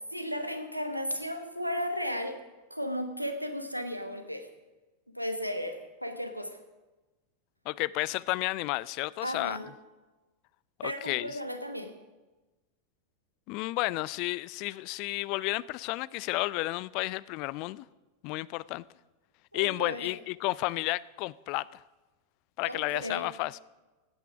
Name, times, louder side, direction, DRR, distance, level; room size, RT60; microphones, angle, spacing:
voice 1, 0.1-2.4 2.7-4.5 5.1-6.6 9.2-9.7 10.8-11.9 19.5-20.2 22.6-23.3, equal, 90° right, 1.2 m, -35 dB
voice 2, 7.7-9.6 10.8-11.4 13.5-17.9 18.2-18.8 19.5-21.7 22.6-23.6, left 20 dB, 45° left, 0.3 m, -32 dB
16.0 x 9.1 x 5.0 m
figure-of-eight pair, 90°, 0 cm